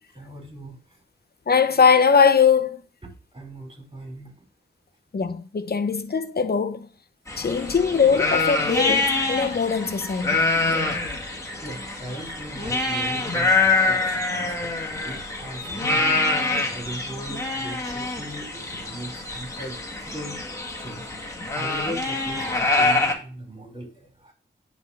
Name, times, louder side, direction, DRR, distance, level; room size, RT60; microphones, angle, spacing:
voice 1, 0.1-0.8 3.0-4.3 11.6-20.4 20.8-21.1 21.5-24.3, right 1 dB, 25° right, 4.0 m, -39 dB
voice 2, 1.5-2.8 5.1-6.9 7.4-10.4, left 6 dB, 55° left, 0.8 m, -21 dB
sound 1, 7.3-23.1, left 3 dB, 15° left, 1.9 m, -25 dB
9.6 x 3.6 x 4.8 m
cardioid pair, 65°, 20 cm